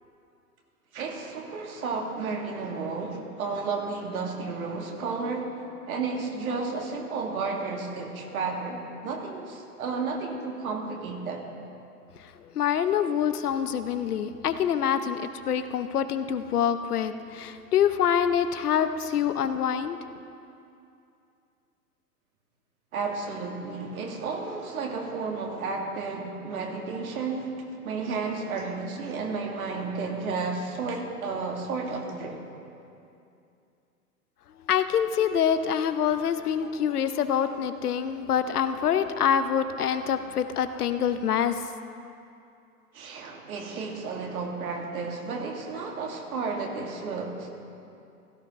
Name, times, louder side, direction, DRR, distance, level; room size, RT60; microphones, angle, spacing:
voice 1, 0.9-5.5 5.9-11.4 22.9-27.5 27.8-32.4 42.9-47.6, right 4 dB, 60° right, 1 dB, 2.2 m, -32 dB
voice 2, 12.5-20.0 34.7-41.6, left 8 dB, 70° left, 10 dB, 0.8 m, -26 dB
16.5 x 14.0 x 3.1 m, 2.6 s
figure-of-eight pair, 115°, 48 cm